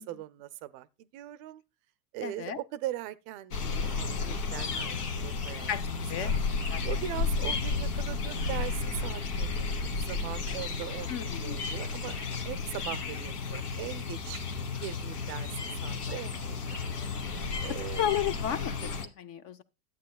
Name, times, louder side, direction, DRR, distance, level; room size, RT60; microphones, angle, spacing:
voice 1, 0.0-1.6 2.1-4.9 5.2-5.7 6.2-6.4 6.8-14.4 14.8-16.8 17.6-18.1, right 14 dB, 40° right, 0.5 m, -40 dB
voice 2, 2.2-2.6 5.7-6.4 6.7-6.8 11.1-11.6 17.2-17.4 17.7-19.6, left 9 dB, 30° left, 0.5 m, -34 dB
sound 1, 3.5-19.1, left 4 dB, 80° left, 1.4 m, -33 dB
12.0 x 8.5 x 2.3 m
hypercardioid pair, 100°, 46 cm